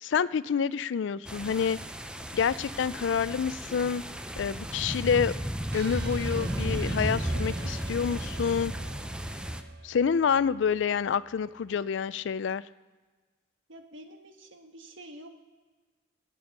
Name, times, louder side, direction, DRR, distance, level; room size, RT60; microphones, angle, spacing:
voice 1, 0.0-1.8 2.3-4.0 4.4-5.3 5.7-8.7 9.8-12.6, left 7 dB, 70° left, 18 dB, 0.4 m, -27 dB
sound 1, 1.3-9.6, equal, 5° right, 0.5 m, -34 dB
sound 2, 5.7-11.8, right 2 dB, 55° right, 0.9 m, -44 dB
sound 3, 6.6-9.9, right 1 dB, 50° left, 0.7 m, -53 dB
voice 2, 13.7-15.4, right 1 dB, 85° right, 5 dB, 1.4 m, -48 dB
16.0 x 7.0 x 6.0 m, 1.4 s
head